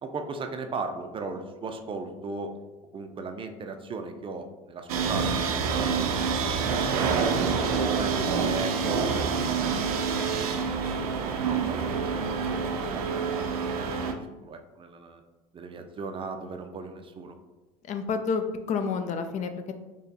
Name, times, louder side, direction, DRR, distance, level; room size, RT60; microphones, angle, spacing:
voice 1, 0.0-2.6 2.9-7.5 8.0-10.9 11.6-13.0 13.3-15.2 15.5-17.4, right 4 dB, 30° right, 6 dB, 0.4 m, -38 dB
sound 1, 4.9-14.1, right 5 dB, 90° right, 0.4 m, -27 dB
voice 2, 17.8-19.7, left 5 dB, 40° left, 8 dB, 0.4 m, -29 dB
4.1 x 3.0 x 2.7 m, 1.1 s
hypercardioid pair, 85°, 18 cm